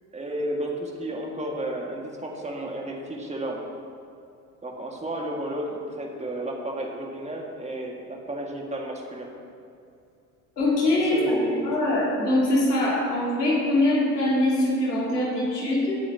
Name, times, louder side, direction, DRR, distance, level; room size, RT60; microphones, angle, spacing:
voice 1, 0.1-3.6 4.6-9.3 11.1-11.7, right 1 dB, 15° right, 0 dB, 1.9 m, -32 dB
voice 2, 10.6-11.4 11.6-16.0, left 1 dB, 90° left, -6 dB, 2.9 m, -23 dB
17.5 x 8.4 x 2.9 m, 2.5 s
hypercardioid pair, 65°, 47 cm